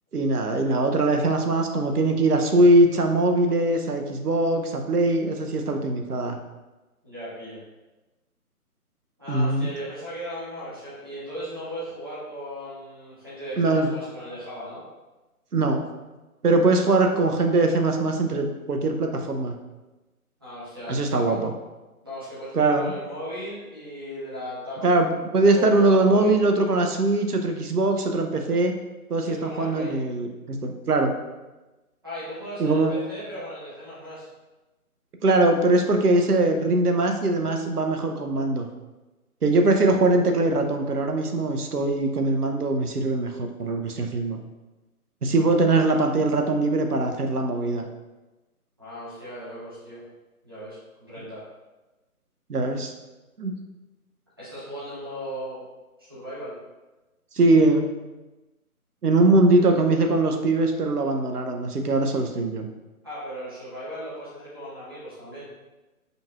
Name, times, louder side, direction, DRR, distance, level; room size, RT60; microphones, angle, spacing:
voice 1, 0.1-6.4 9.3-9.7 13.6-13.9 15.5-15.8 16.4-19.5 20.9-21.5 22.5-22.9 24.8-28.7 29.1-31.1 32.6-32.9 35.2-38.7 39.4-44.4 45.2-47.8 52.5-52.9 53.4-53.5 57.3-58.0 59.0-62.7, right 2 dB, 85° right, 4 dB, 0.7 m, -21 dB
voice 2, 7.0-7.6 9.2-14.8 20.4-21.4 22.0-24.9 25.5-26.3 29.2-30.0 32.0-34.3 39.8-39.9 48.8-50.0 50.4-51.5 54.4-55.6 56.0-56.6 63.0-65.5, equal, 15° right, -11 dB, 0.7 m, -37 dB
5.2 x 2.9 x 2.4 m, 1.1 s
figure-of-eight pair, 150°, 45 cm